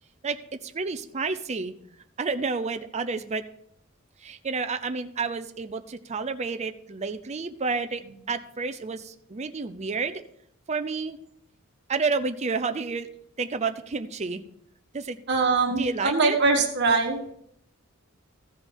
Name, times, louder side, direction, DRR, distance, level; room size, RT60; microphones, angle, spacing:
voice 1, 0.2-1.7 2.2-3.4 4.2-8.0 8.3-10.2 10.7-11.2 11.9-13.1 13.4-14.4 14.9-15.2 15.8-16.4, right 4 dB, 35° right, 8 dB, 0.6 m, -30 dB
voice 2, 15.3-17.2, right 4 dB, 55° right, 2 dB, 1.6 m, -22 dB
14.5 x 5.1 x 5.4 m, 0.69 s
head